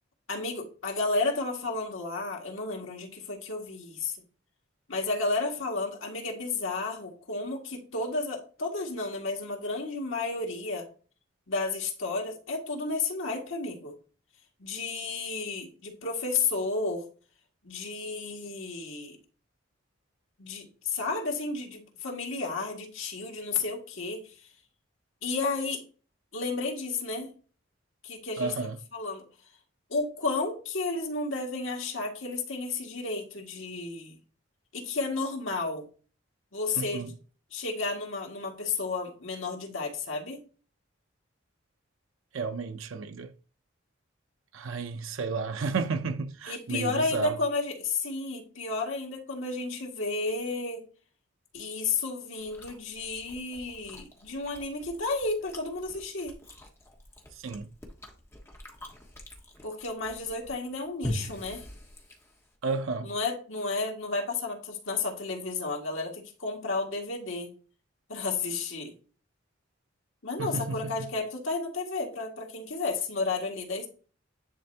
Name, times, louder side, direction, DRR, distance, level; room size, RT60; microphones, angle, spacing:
voice 1, 0.3-4.2 4.9-10.9 11.5-14.0 14.6-17.0 17.6-19.2 20.4-24.2 25.2-25.8 26.3-27.3 28.0-28.5 28.9-29.2 29.9-34.2 34.7-35.9 36.5-37.0 37.5-40.4 46.5-50.8 51.5-56.3 59.6-61.7 63.0-67.5 68.1-68.9 70.2-73.9, left 3 dB, 80° left, 2.0 m, -32 dB
voice 2, 28.4-28.8 36.8-37.1 42.3-43.3 44.5-47.4 57.4-57.7 62.6-63.1 70.4-70.9, right 4 dB, 85° right, 0.6 m, -32 dB
Chewing mastication, 52.4-62.6, left 1 dB, 15° left, 1.4 m, -43 dB
10.0 x 4.3 x 2.8 m
head